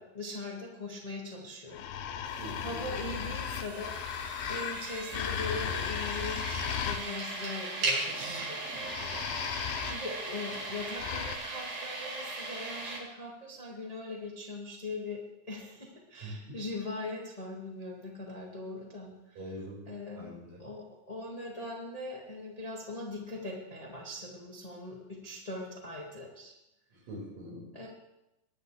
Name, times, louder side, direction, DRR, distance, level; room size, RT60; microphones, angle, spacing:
voice 1, 0.0-1.9 2.2-3.9 4.2-9.2 9.5-19.4 19.9-20.3 20.6-26.5 27.7-27.9, left 2 dB, 20° left, -3 dB, 1.0 m, -41 dB
sound 1, 1.7-7.5 8.7-11.4, left 9 dB, 90° left, 2.7 m, -36 dB
sound 2, 2.2-13.0, right 2 dB, 50° right, 4.5 m, -38 dB
voice 2, 2.4-2.8 16.2-16.3 19.4-19.8 20.2-20.6 27.0-27.6, equal, 65° right, -5 dB, 6.8 m, -43 dB
20.5 x 11.0 x 3.4 m, 0.92 s
omnidirectional pair, 4.2 m